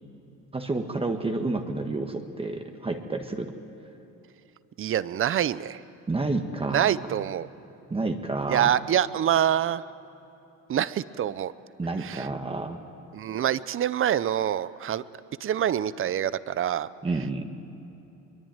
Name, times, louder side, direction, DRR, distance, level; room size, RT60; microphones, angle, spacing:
voice 1, 0.5-3.5 6.1-7.2 7.9-8.7 11.8-12.8 17.0-17.4, right 3 dB, 15° right, 4 dB, 1.5 m, -30 dB
voice 2, 4.8-5.8 6.7-7.5 8.5-9.8 10.7-11.5 12.0-12.3 13.1-15.0 15.4-16.9, right 10 dB, 35° right, 17 dB, 0.7 m, -25 dB
23.5 x 22.5 x 9.0 m, 3.0 s
cardioid pair, 130°, 35 cm